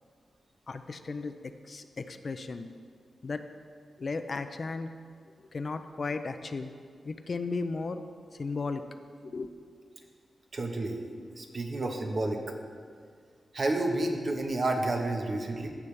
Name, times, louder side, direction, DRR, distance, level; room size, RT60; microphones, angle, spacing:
voice 1, 0.7-2.7 3.2-3.4 4.0-4.9 5.4-6.7 7.0-8.0 8.3-8.8 9.2-9.5, left 4 dB, 45° left, 9 dB, 0.5 m, -35 dB
voice 2, 10.5-11.0 11.4-12.4 13.5-15.7, right 2 dB, 45° right, 2 dB, 1.1 m, -30 dB
15.5 x 7.2 x 3.4 m, 2.1 s
wide cardioid pair, 110°, 0 cm